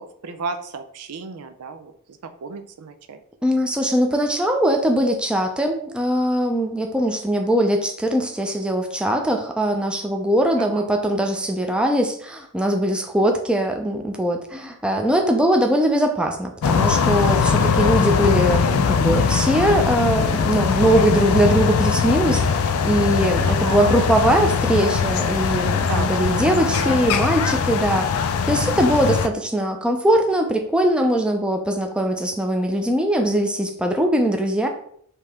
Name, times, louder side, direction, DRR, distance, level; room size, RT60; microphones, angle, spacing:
voice 1, 0.0-1.9 2.4-3.2 10.6-10.9 23.4-24.2 25.8-28.3, right 4 dB, 85° right, 8 dB, 0.5 m, -34 dB
voice 2, 3.4-28.1 28.5-34.7, right 1 dB, 5° right, 3 dB, 0.5 m, -21 dB
sound 1, 16.6-29.3, left 6 dB, 70° left, 0.4 m, -21 dB
5.2 x 2.8 x 3.5 m, 0.65 s
head